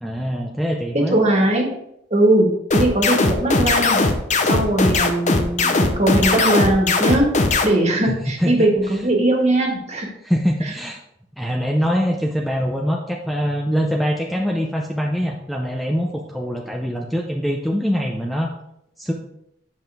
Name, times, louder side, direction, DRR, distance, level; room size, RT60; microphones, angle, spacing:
voice 1, 0.0-1.3 8.1-9.0 10.2-11.0 11.4-18.5 19.0-19.1, equal, ahead, 0 dB, 0.6 m, -23 dB
voice 2, 0.9-1.7 2.1-4.0 4.4-7.3 7.6-10.1, right 1 dB, 35° right, 1 dB, 1.7 m, -19 dB
sound 1, 2.7-7.7, left 3 dB, 40° left, 0.8 m, -18 dB
9.3 x 5.8 x 3.5 m, 0.79 s
head